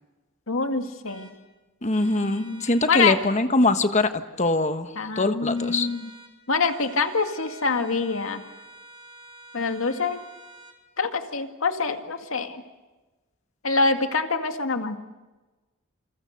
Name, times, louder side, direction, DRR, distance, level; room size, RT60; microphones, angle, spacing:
voice 1, 0.5-1.3 2.2-3.2 5.0-6.1 6.5-8.4 9.5-10.2 11.0-12.6 13.6-15.0, left 4 dB, 75° left, 6 dB, 2.1 m, -25 dB
sound 1, 1.1-1.3 1.9-3.3 5.5-6.3 6.6-10.8, right 2 dB, 20° right, 4.3 m, -49 dB
voice 2, 1.8-5.9, left 2 dB, 35° left, 9 dB, 1.3 m, -23 dB
28.5 x 28.0 x 6.6 m, 1.2 s
head